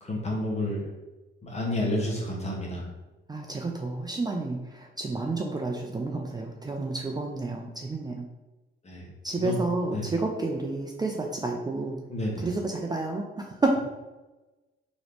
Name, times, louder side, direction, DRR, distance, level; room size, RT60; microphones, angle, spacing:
voice 1, 0.0-0.8 1.4-2.8 8.8-9.1 9.4-9.6 9.9-10.0 12.1-12.5, left 1 dB, 35° left, -2 dB, 1.3 m, -30 dB
voice 2, 3.3-8.2 9.2-12.0 12.4-13.8, right 2 dB, 20° right, 1 dB, 0.4 m, -30 dB
3.8 x 3.0 x 3.4 m, 1.1 s
cardioid pair, 90°, 20 cm